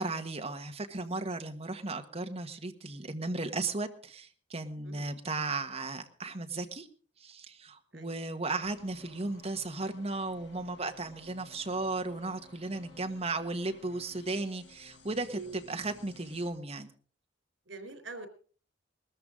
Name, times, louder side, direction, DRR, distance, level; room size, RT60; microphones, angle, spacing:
voice 1, 0.0-6.9 7.2-16.9, right 3 dB, 35° right, 6 dB, 1.5 m, -35 dB
sound 1, 8.6-16.5, left 2 dB, 65° left, 6.1 m, -57 dB
voice 2, 17.7-18.3, right 3 dB, 90° right, 8 dB, 3.8 m, -44 dB
20.0 x 14.0 x 3.8 m, 0.41 s
head